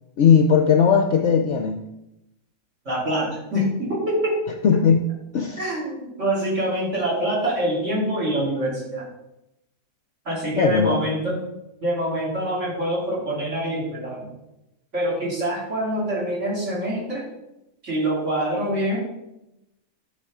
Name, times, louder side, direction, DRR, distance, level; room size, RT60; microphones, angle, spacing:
voice 1, 0.2-1.8 4.6-5.1 5.3-5.6 10.6-11.0, left 6 dB, 60° left, 5 dB, 0.8 m, -18 dB
voice 2, 2.9-4.4 5.6-9.0 10.3-11.5 11.8-14.3 14.9-17.2 17.8-19.0, right 1 dB, 45° right, -4 dB, 3.8 m, -25 dB
10.0 x 6.6 x 4.9 m, 0.90 s
omnidirectional pair, 1.7 m